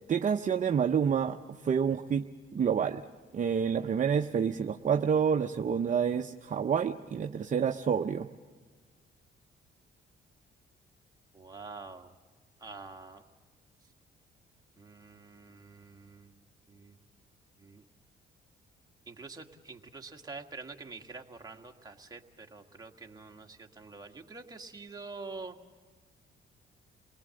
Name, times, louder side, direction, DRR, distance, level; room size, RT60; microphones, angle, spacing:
voice 1, 0.1-1.4 1.6-2.2 2.5-3.0 3.3-8.3, right 7 dB, 40° right, 6 dB, 0.7 m, -28 dB
voice 2, 11.3-12.1 12.6-13.2 14.8-16.3 16.7-17.0 17.6-17.8 19.1-25.6, right 3 dB, 20° right, 2 dB, 1.7 m, -46 dB
28.5 x 19.5 x 7.7 m, 1.4 s
cardioid pair, 90°, 20 cm